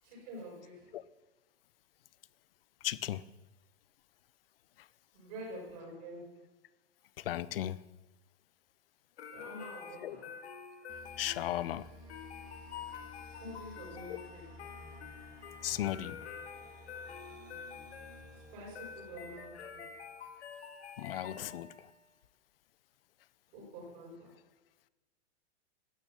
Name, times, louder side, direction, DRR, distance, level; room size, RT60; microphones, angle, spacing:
voice 1, 0.0-0.9 5.1-6.3 9.3-10.3 13.4-14.5 18.3-19.8 23.5-24.3, equal, 35° right, 6.2 m, -47 dB
voice 2, 2.8-3.2 7.2-7.8 10.0-10.2 11.2-11.9 14.1-14.2 15.6-16.2 21.0-21.9, left 12 dB, 60° left, 0.7 m, -36 dB
sound 1, 9.2-22.0, left 7 dB, 75° left, 2.1 m, -48 dB
sound 2, 10.9-20.3, left 1 dB, 10° right, 1.7 m, -54 dB
13.0 x 11.0 x 7.1 m
supercardioid pair, 175°, 33 cm